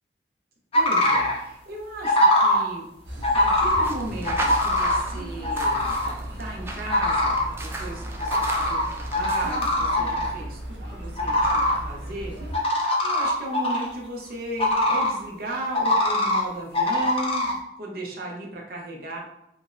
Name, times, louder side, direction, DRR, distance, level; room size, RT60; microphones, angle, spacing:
sound 1, 0.7-1.4 2.0-2.6 3.2-3.8 4.2-5.0 5.4-6.1 6.9-7.4 8.2-8.8 9.1-10.3 11.2-11.8 12.5-13.9 14.6-15.1 15.7-16.4 16.7-17.5, left 1 dB, 30° left, 0.6 m, -22 dB
voice 1, 0.7-2.9 3.3-19.2, right 1 dB, 55° right, -1 dB, 0.8 m, -36 dB
sound 2, 3.0-12.6, equal, 80° right, 0.9 m, -36 dB
sound 3, 3.8-9.9, right 2 dB, 15° right, 0.4 m, -36 dB
3.4 x 2.6 x 3.1 m, 0.82 s
head